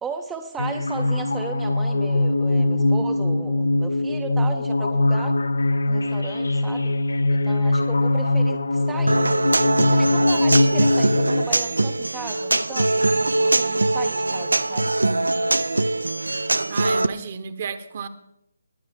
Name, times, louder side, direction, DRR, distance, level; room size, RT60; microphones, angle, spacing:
voice 1, 0.0-5.4 5.9-7.0 7.3-9.3 9.5-14.9, right 5 dB, 10° right, 5 dB, 0.6 m, -36 dB
sound 1, 0.6-11.4, left 2 dB, 70° left, 0.6 m, -21 dB
Human voice / Acoustic guitar, 9.1-17.1, right 2 dB, 80° right, 0.6 m, -22 dB
voice 2, 16.7-18.1, right 6 dB, 40° right, 11 dB, 1.1 m, -31 dB
21.5 x 8.1 x 3.6 m, 0.79 s
figure-of-eight pair, 150°, 0 cm